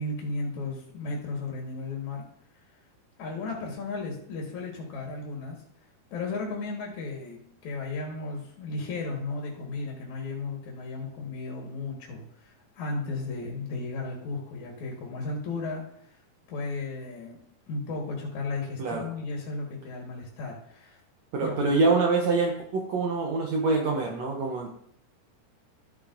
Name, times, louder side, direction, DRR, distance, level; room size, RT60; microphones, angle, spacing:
voice 1, 0.0-2.2 2.5-2.6 3.2-5.6 6.1-16.2 16.5-17.4 17.7-21.0 21.4-21.7, left 3 dB, 65° left, -1 dB, 2.9 m, -35 dB
voice 2, 21.3-24.7, right 3 dB, 65° right, 1 dB, 1.9 m, -25 dB
13.0 x 8.3 x 2.7 m, 0.67 s
omnidirectional pair, 3.8 m